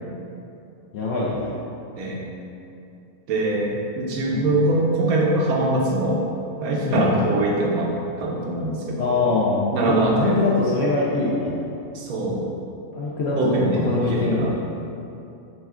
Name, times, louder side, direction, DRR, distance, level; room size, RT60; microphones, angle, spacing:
voice 1, 0.9-1.5 4.3-4.5 6.9-7.1 9.0-9.6 9.9-11.5 12.9-13.6 13.8-14.5, left 3 dB, 65° left, -6 dB, 0.7 m, -23 dB
voice 2, 2.0-2.3 3.3-6.3 6.6-9.1 9.7-10.4 11.9-12.4 13.4-14.5, right 2 dB, 85° right, -2 dB, 1.1 m, -22 dB
6.3 x 2.3 x 2.4 m, 2.7 s
omnidirectional pair, 1.5 m